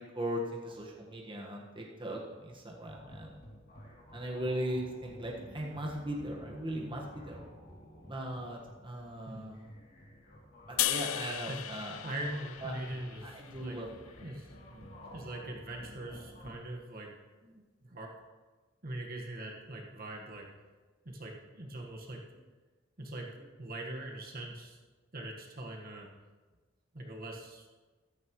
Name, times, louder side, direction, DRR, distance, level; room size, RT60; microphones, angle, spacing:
voice 1, 0.0-3.4 4.1-7.4 8.0-9.7 10.7-12.0 12.6-12.7 13.2-13.9, right 1 dB, 25° right, -2 dB, 1.6 m, -38 dB
sound 1, 2.8-16.5, equal, 50° left, 3.0 m, -54 dB
sound 2, 4.7-9.0, equal, 25° left, 2.8 m, -55 dB
sound 3, 10.8-14.1, left 14 dB, 85° left, 0.4 m, -36 dB
voice 2, 12.0-14.9 15.1-17.1 17.4-18.1 18.8-20.5 21.0-22.2 23.0-24.8 25.1-26.1 26.9-27.7, right 1 dB, 45° right, 0 dB, 1.6 m, -42 dB
15.0 x 13.0 x 3.2 m, 1.3 s
head